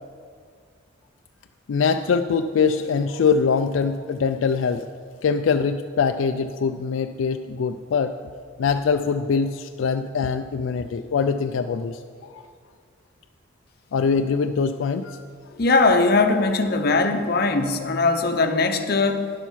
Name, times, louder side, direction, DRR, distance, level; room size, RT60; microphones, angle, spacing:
voice 1, 1.7-4.9 5.2-8.1 8.6-12.0 12.3-12.5 13.9-15.2 15.5-15.6, left 5 dB, 75° left, 7 dB, 0.3 m, -23 dB
voice 2, 15.6-19.3, left 3 dB, 50° left, 7 dB, 0.7 m, -20 dB
11.0 x 7.2 x 5.7 m, 2.1 s
head